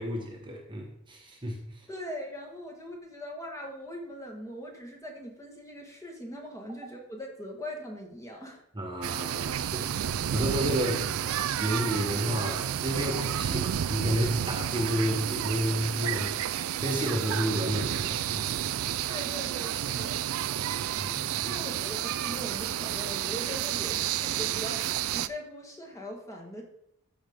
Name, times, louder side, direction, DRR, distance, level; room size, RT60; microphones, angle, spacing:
voice 1, 0.0-1.6 8.7-11.1 11.6-18.6 21.0-21.5, equal, 20° right, 1 dB, 1.2 m, -31 dB
voice 2, 1.9-8.6 19.1-20.5 21.4-26.6, equal, 15° left, 0 dB, 1.5 m, -41 dB
sound 1, 9.0-25.3, right 10 dB, 65° right, 0.3 m, -31 dB
14.0 x 5.0 x 3.6 m, 0.73 s
head